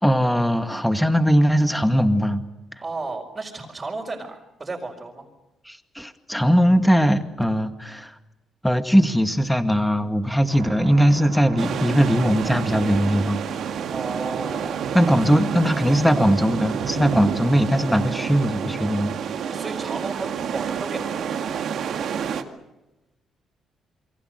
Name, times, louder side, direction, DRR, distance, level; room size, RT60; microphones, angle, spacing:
voice 1, 0.0-2.4 5.7-8.1 8.6-13.4 14.9-19.1, equal, ahead, 7 dB, 2.0 m, -20 dB
voice 2, 2.8-5.3 13.9-15.0 19.5-21.5, right 3 dB, 25° right, -2 dB, 4.8 m, -33 dB
sound 1, 10.5-17.4, right 7 dB, 90° right, 3.2 m, -34 dB
sound 2, 11.6-22.4, right 7 dB, 70° right, 2.2 m, -29 dB
28.5 x 23.0 x 6.5 m, 0.99 s
cardioid pair, 90°, 0 cm